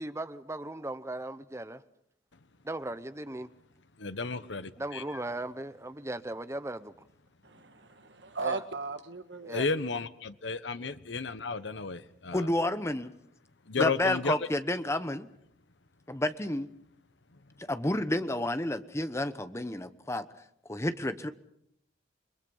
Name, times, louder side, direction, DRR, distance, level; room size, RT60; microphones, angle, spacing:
voice 1, 0.0-1.8 2.6-3.5 4.8-6.9 8.4-8.6 9.4-9.7 10.7-10.9, right 1 dB, 15° right, 0.8 m, -38 dB
voice 2, 4.0-5.0 9.5-12.5 13.7-14.3, left 4 dB, 70° left, 1.1 m, -33 dB
voice 3, 7.4-9.6, right 4 dB, 70° right, 1.7 m, -37 dB
voice 4, 12.3-13.1 13.8-15.3 16.1-16.7 17.6-20.3 20.7-21.3, left 1 dB, 15° left, 1.1 m, -30 dB
29.0 x 22.5 x 5.6 m
head